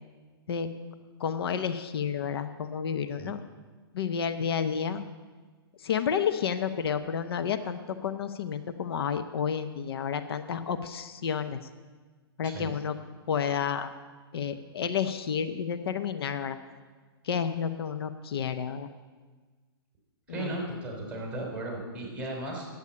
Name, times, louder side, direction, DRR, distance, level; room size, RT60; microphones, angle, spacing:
voice 1, 1.2-3.4 3.9-5.0 5.8-11.6 12.4-13.0 13.3-13.9 14.3-16.6 17.2-18.9 20.3-20.6, left 7 dB, 70° left, 10 dB, 0.8 m, -30 dB
voice 2, 12.4-12.8 20.3-22.7, right 2 dB, 10° right, -1 dB, 4.4 m, -36 dB
9.7 x 8.1 x 8.6 m, 1.4 s
hypercardioid pair, 130°, 13 cm